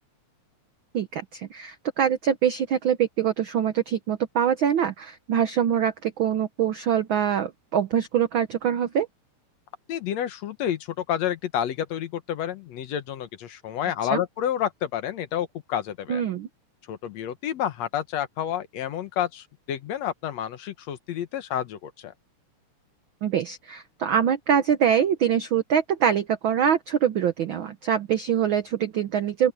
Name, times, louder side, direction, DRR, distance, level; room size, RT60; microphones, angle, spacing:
voice 1, 0.9-9.1 14.1-14.2 16.1-16.5 23.2-29.5, right 8 dB, 80° right, 1.1 m, -24 dB
voice 2, 9.9-16.2 16.9-22.1, left 10 dB, 70° left, 2.2 m, -29 dB
open air
omnidirectional pair, 3.4 m